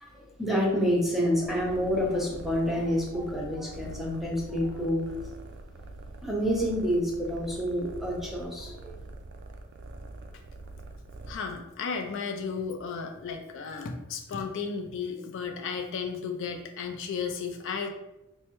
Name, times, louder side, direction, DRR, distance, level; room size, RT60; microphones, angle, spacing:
voice 1, 0.0-5.2 6.2-8.9, equal, ahead, -2 dB, 0.6 m, -28 dB
sound 1, 1.4-11.3, right 2 dB, 55° right, 0.4 m, -44 dB
voice 2, 11.3-17.9, left 5 dB, 60° left, 3 dB, 0.4 m, -34 dB
4.5 x 2.1 x 3.0 m, 0.93 s
head